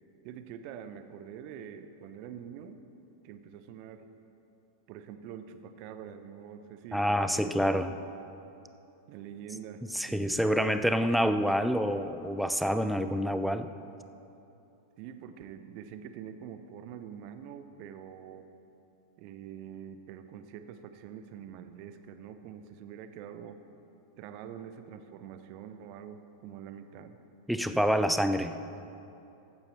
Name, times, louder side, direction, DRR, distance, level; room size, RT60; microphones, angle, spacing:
voice 1, 0.2-4.1 4.9-7.5 7.8-8.0 9.1-10.3 15.0-18.5 19.2-23.6 24.2-27.2, right 8 dB, 45° right, 9 dB, 0.7 m, -45 dB
voice 2, 6.9-7.9 9.9-13.7 27.5-28.6, equal, ahead, 9 dB, 0.5 m, -27 dB
15.5 x 8.8 x 4.4 m, 2.8 s
figure-of-eight pair, 90°, 0 cm